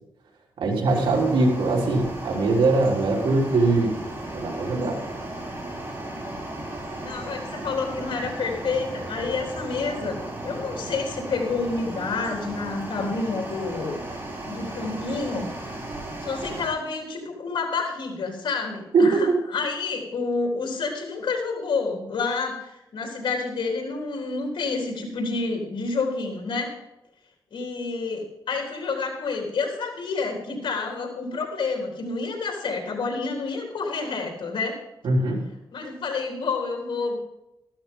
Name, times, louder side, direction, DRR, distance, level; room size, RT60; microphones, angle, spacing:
voice 1, 0.6-4.0 4.3-5.0 18.9-19.4 35.0-35.4, right 3 dB, 90° right, -2 dB, 3.5 m, -21 dB
sound 1, 0.9-16.7, right 1 dB, 25° right, 5.3 m, -35 dB
voice 2, 7.0-14.0 14.5-15.5 16.2-26.8 27.5-34.8 35.7-37.2, left 4 dB, 80° left, 0 dB, 3.5 m, -29 dB
13.5 x 13.0 x 3.7 m, 0.91 s
cardioid pair, 85°, 9 cm